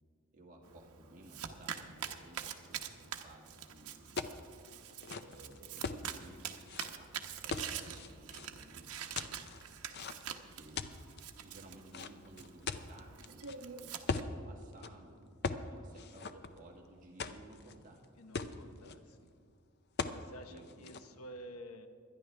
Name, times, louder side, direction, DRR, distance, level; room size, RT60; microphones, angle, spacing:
voice 1, 0.3-4.1 5.1-9.5 10.2-11.0 11.3-18.0 18.8-19.0 20.5-21.0, right 1 dB, 35° right, -1 dB, 1.9 m, -57 dB
Domestic sounds home sounds, 0.6-14.2, right 8 dB, 80° right, 0.9 m, -46 dB
sound 1, 4.2-4.4 4.9-6.0 6.7-6.9 7.5-8.5 9.2-10.3 10.8-11.2 11.9-13.6 14.1-14.3 14.7-14.9 15.4-15.7 16.0-16.8 17.2-17.7 18.0-18.1 18.3-18.9 20.0-20.2 20.6-21.0, left 4 dB, 45° left, 0.6 m, -39 dB
voice 2, 18.2-19.3 20.0-21.9, equal, 75° left, 7 dB, 1.0 m, -51 dB
24.0 x 10.5 x 3.4 m, 2.3 s
head